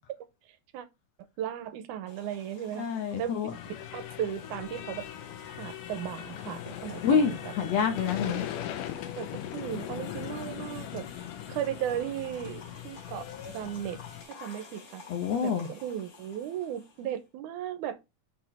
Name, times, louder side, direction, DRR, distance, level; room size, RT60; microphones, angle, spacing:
voice 1, 1.4-2.9 3.2-3.5 3.9-5.1 5.5-7.5 8.2-8.5 9.2-9.3 9.5-11.0 11.5-13.3 13.5-14.0 14.4-15.0 15.4-18.0, right 10 dB, 80° right, 2.1 m, -36 dB
sound 1, 2.1-17.2, left 5 dB, 45° left, 2.8 m, -51 dB
voice 2, 2.8-3.5 7.0-8.5 15.1-15.7, left 6 dB, 70° left, 1.8 m, -27 dB
sound 2, 3.5-14.2, left 11 dB, 90° left, 2.4 m, -40 dB
5.8 x 4.3 x 4.2 m
omnidirectional pair, 3.6 m